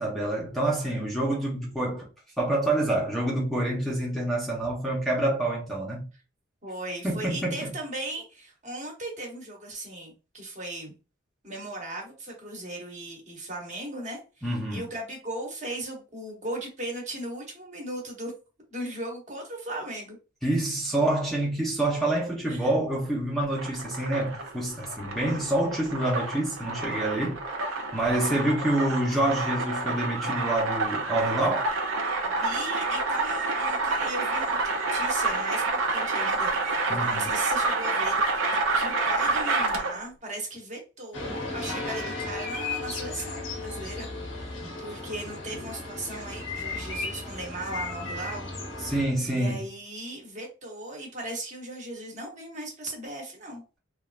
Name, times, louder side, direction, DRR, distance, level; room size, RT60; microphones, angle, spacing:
voice 1, 0.0-2.1 2.4-6.1 7.0-7.7 14.4-14.9 20.4-27.4 27.9-31.7 36.9-37.2 44.6-44.7 48.8-49.6, right 1 dB, ahead, 0.7 m, -27 dB
voice 2, 6.6-11.0 11.4-18.3 18.7-20.2 22.5-22.7 32.2-48.5 49.2-53.6, right 1 dB, 35° right, 1.1 m, -37 dB
sound 1, 23.4-40.1, right 3 dB, 80° right, 0.5 m, -28 dB
sound 2, 41.1-49.1, left 3 dB, 65° left, 0.9 m, -35 dB
3.2 x 2.4 x 2.4 m
head